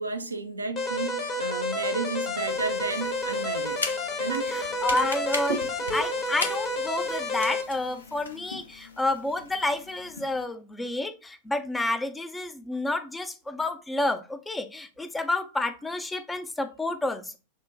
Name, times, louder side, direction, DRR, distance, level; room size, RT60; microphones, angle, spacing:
voice 1, 0.0-3.9 4.2-4.6, right 3 dB, 80° right, 0.5 m, -33 dB
sound 1, 0.8-7.6, left 1 dB, 25° left, 0.9 m, -30 dB
sound 2, 2.3-10.4, left 3 dB, 75° left, 0.6 m, -39 dB
sound 3, 4.4-7.6 8.9-9.0, right 3 dB, 55° left, 1.7 m, -41 dB
voice 2, 4.5-17.4, left 2 dB, 10° left, 0.4 m, -30 dB
6.1 x 2.1 x 2.7 m
figure-of-eight pair, 90°, 0 cm